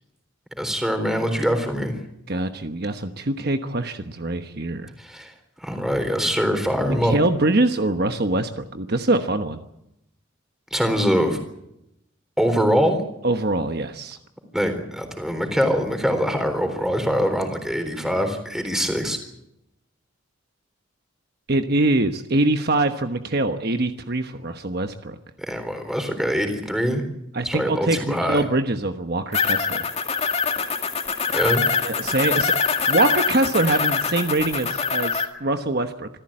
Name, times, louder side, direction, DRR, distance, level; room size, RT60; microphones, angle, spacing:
voice 1, 0.6-2.0 5.0-7.2 10.7-11.4 12.4-13.0 14.5-19.2 25.4-27.0 27.4-28.5 31.3-31.6, equal, ahead, 7 dB, 3.8 m, -23 dB
voice 2, 2.3-4.9 6.9-9.6 13.2-14.2 21.5-25.2 27.3-29.8 31.8-36.1, right 2 dB, 50° right, 7 dB, 1.1 m, -23 dB
sound 1, 29.3-35.2, left 5 dB, 30° left, 2.2 m, -24 dB
26.0 x 15.0 x 8.8 m, 0.82 s
head